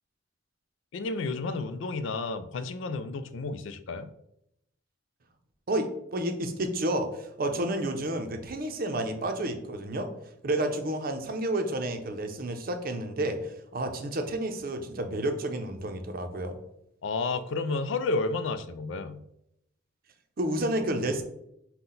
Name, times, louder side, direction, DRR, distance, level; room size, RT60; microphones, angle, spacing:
voice 1, 0.9-4.1 17.0-19.2, left 3 dB, 70° left, 11 dB, 0.4 m, -31 dB
voice 2, 5.7-10.1 10.4-16.5 20.4-21.2, right 1 dB, 50° right, 6 dB, 0.6 m, -30 dB
5.7 x 2.2 x 3.9 m, 0.77 s
head